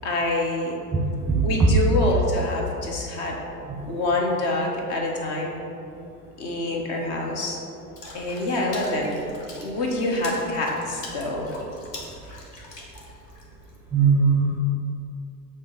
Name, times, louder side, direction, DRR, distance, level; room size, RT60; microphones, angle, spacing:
voice 1, 0.0-0.7 1.4-3.4 3.9-5.6 6.4-7.6 8.1-9.2 9.6-11.5, left 2 dB, 45° left, 0 dB, 1.3 m, -26 dB
voice 2, 0.9-1.7 3.7-3.8 13.9-14.6, right 4 dB, 5° right, -3 dB, 0.8 m, -20 dB
Water / Splash splatter, 8.0-13.8, left 2 dB, 80° left, 1.3 m, -43 dB
7.2 x 3.3 x 5.4 m, 2.7 s
figure-of-eight pair, 85°, 48 cm